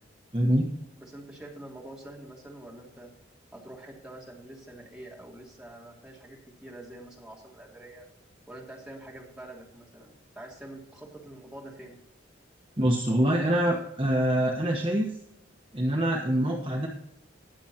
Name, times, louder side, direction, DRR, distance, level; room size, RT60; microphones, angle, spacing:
voice 1, 0.3-0.7 12.8-15.1 15.7-16.9, right 1 dB, 25° right, -1 dB, 1.1 m, -25 dB
voice 2, 0.9-3.1 3.5-8.1 8.5-12.0, right 1 dB, 5° right, -4 dB, 2.8 m, -46 dB
19.5 x 7.1 x 2.9 m, 0.81 s
head